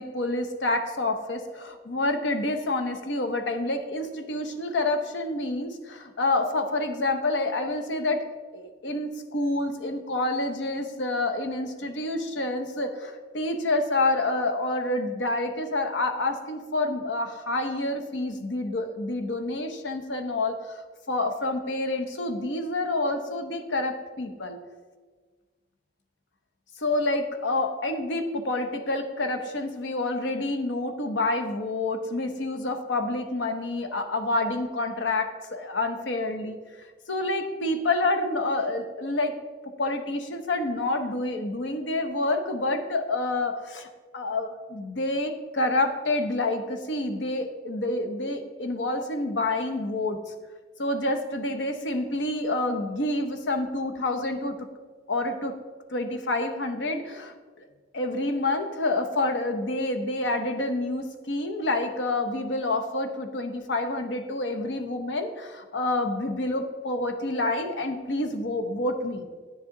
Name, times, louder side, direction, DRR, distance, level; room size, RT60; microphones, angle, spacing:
voice 1, 0.0-20.8 21.1-24.6 26.8-36.6 37.1-39.4 39.8-43.9 44.1-50.2 50.8-54.5 55.1-55.5 55.9-57.3 57.9-69.2, left 2 dB, 90° left, 6 dB, 0.8 m, -28 dB
9.4 x 7.2 x 3.8 m, 1.4 s
head